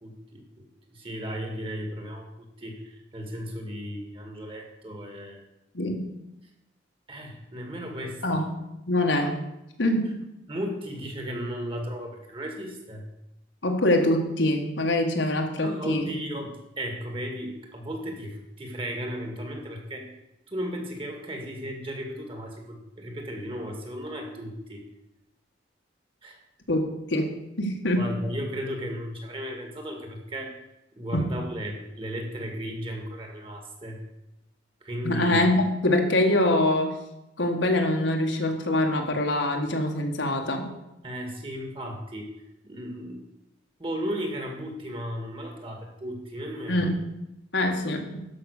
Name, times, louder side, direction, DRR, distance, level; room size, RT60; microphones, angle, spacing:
voice 1, 0.0-5.4 7.1-8.4 10.5-13.1 15.6-20.1 20.5-24.8 26.2-26.4 28.0-30.6 31.0-34.0 34.8-35.4 41.0-42.3 42.6-43.2 43.8-46.9, equal, 30° right, 3 dB, 2.1 m, -35 dB
voice 2, 5.7-6.1 8.2-8.4 8.9-9.4 9.8-10.3 13.6-16.1 26.7-27.3 27.6-28.2 31.1-31.2 35.0-37.0 37.4-40.7 46.7-46.9 47.5-48.3, left 1 dB, 75° left, 3 dB, 1.7 m, -24 dB
12.5 x 5.8 x 6.6 m, 0.89 s
head